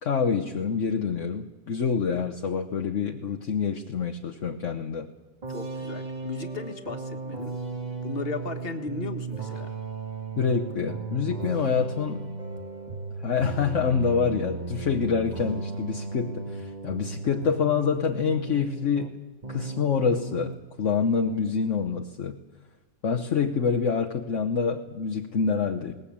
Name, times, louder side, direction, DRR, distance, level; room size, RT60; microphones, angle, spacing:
voice 1, 0.0-5.1 10.4-12.2 13.2-19.1 19.5-22.4 23.0-25.9, left 6 dB, 60° left, 4 dB, 1.3 m, -26 dB
sound 1, 5.4-19.2 19.4-20.6, right 4 dB, 30° right, 1.6 m, -36 dB
voice 2, 5.5-7.5 8.0-9.7, left 3 dB, 40° left, 7 dB, 1.8 m, -36 dB
20.0 x 19.5 x 8.6 m, 1.2 s
omnidirectional pair, 1.5 m